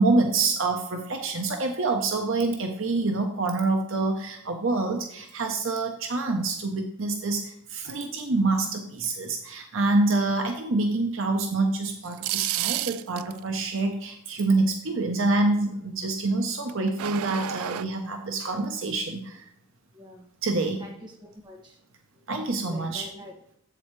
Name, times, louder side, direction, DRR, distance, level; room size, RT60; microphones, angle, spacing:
voice 1, 0.0-19.4 20.4-20.8 22.3-23.1, right 3 dB, 65° right, 4 dB, 0.9 m, -26 dB
sound 1, 11.9-13.4 16.7-17.8, right 13 dB, 85° right, 0.3 m, -30 dB
voice 2, 19.9-20.2 20.8-21.8 22.7-23.6, left 1 dB, 20° right, -1 dB, 1.8 m, -45 dB
7.8 x 7.7 x 3.2 m, 0.71 s
head